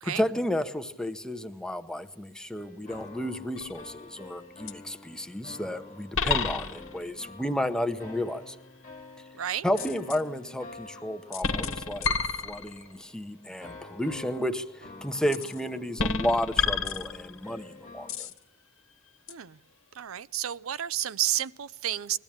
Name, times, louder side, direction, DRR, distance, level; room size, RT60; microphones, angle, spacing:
voice 1, 0.0-8.6 9.6-12.1 12.4-18.3, equal, 5° left, 0.8 m, -32 dB
sound 1, 2.6-18.1, left 3 dB, 40° left, 1.6 m, -48 dB
sound 2, 3.6-4.0 4.7-4.8 6.1-7.1 9.8-10.2 11.3-12.9 15.3-15.6 16.0-17.5 18.1-18.4 19.3-19.4, left 5 dB, 70° left, 1.3 m, -30 dB
voice 2, 9.3-9.7 19.3-19.6 19.9-22.2, right 11 dB, 90° right, 0.6 m, -31 dB
21.5 x 14.0 x 8.7 m
head